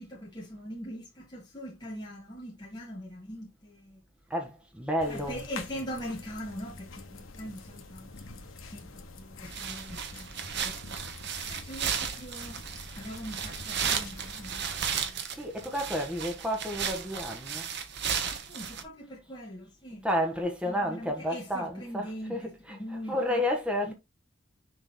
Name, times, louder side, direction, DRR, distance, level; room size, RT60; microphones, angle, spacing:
voice 1, 0.0-4.0 5.1-8.4 8.7-11.0 11.4-12.6 13.0-14.7 15.0-15.2 18.1-20.1 20.7-23.4 23.8-23.9, equal, 20° left, 2.1 m, -42 dB
voice 2, 4.3-5.4 15.3-17.7 20.0-23.9, equal, 5° right, 1.3 m, -31 dB
sound 1, 5.0-15.0, left 3 dB, 70° left, 1.2 m, -46 dB
sound 2, 9.4-18.8, right 7 dB, 50° right, 0.9 m, -34 dB
6.5 x 3.9 x 3.9 m
head